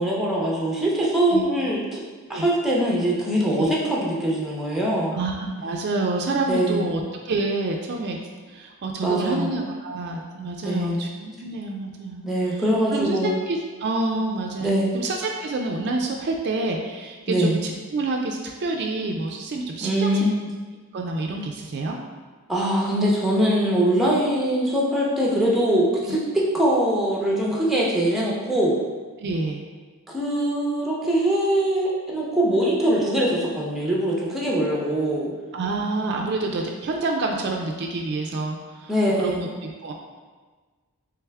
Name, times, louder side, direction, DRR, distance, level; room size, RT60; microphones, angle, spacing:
voice 1, 0.0-2.0 2.3-5.2 6.5-7.0 9.0-9.5 10.6-11.1 12.2-13.3 14.6-14.9 17.3-17.6 19.8-20.5 22.5-28.8 30.1-35.3 38.9-39.5, right 1 dB, ahead, -4 dB, 0.6 m, -22 dB
voice 2, 5.1-8.2 8.5-12.2 12.9-20.1 20.9-22.0 29.2-29.7 35.5-38.9 39.2-39.9, right 2 dB, 50° right, 1 dB, 0.4 m, -28 dB
3.4 x 3.4 x 3.3 m, 1.4 s
head